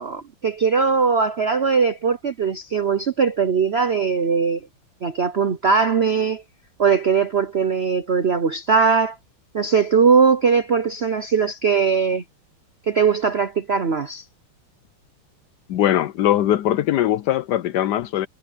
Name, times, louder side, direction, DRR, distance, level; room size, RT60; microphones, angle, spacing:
voice 1, 0.0-4.6 5.0-6.4 6.8-9.2 9.5-12.2 12.9-14.2, right 5 dB, 85° right, 0.5 m, -20 dB
voice 2, 15.7-18.3, left 12 dB, 75° left, 1.0 m, -20 dB
omnidirectional pair, 2.3 m